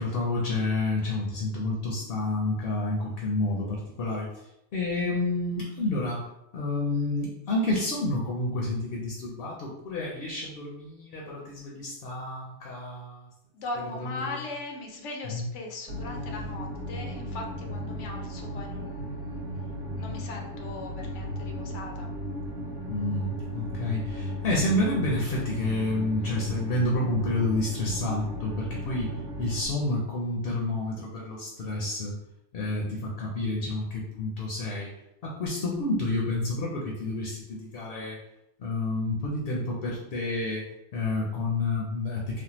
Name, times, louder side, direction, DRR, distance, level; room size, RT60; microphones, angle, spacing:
voice 1, 0.0-4.3 4.7-6.2 6.5-13.3 14.0-14.4 15.2-15.5 22.9-29.1 29.4-32.2 32.5-34.9 35.2-38.2 38.6-40.6 40.9-42.4, left 2 dB, 60° left, -2 dB, 0.7 m, -29 dB
voice 2, 13.5-19.5 20.0-22.1, left 2 dB, 90° left, 2 dB, 1.0 m, -39 dB
sound 1, 15.9-29.6, equal, 65° right, 0.9 m, -36 dB
3.5 x 2.0 x 2.9 m, 0.86 s
omnidirectional pair, 1.2 m